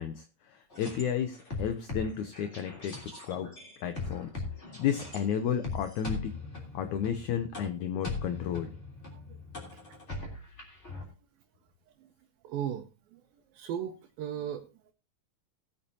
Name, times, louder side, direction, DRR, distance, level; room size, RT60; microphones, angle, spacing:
voice 1, 0.0-3.5 3.8-4.4 4.8-6.4 6.7-8.7, left 8 dB, 75° left, 10 dB, 1.8 m, -32 dB
sound 1, 0.7-5.2 5.6-11.0, left 3 dB, 20° left, 3.1 m, -40 dB
voice 2, 12.4-12.8 13.1-13.2 13.5-14.6, right 9 dB, 80° right, 3 dB, 2.7 m, -35 dB
18.5 x 8.7 x 2.8 m, 0.29 s
omnidirectional pair, 4.2 m